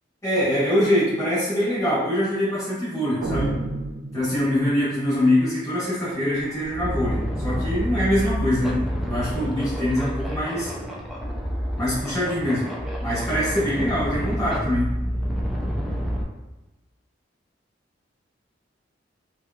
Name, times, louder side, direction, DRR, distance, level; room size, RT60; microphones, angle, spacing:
voice 1, 0.2-3.5 4.1-10.7 11.8-12.7 13.0-15.0, left 1 dB, 20° left, -12 dB, 1.5 m, -24 dB
sound 1, 3.2-4.8, right 2 dB, 80° right, 0.5 m, -30 dB
sound 2, 6.5-16.2, equal, ahead, 0.4 m, -28 dB
3.3 x 2.9 x 2.4 m, 1.1 s
head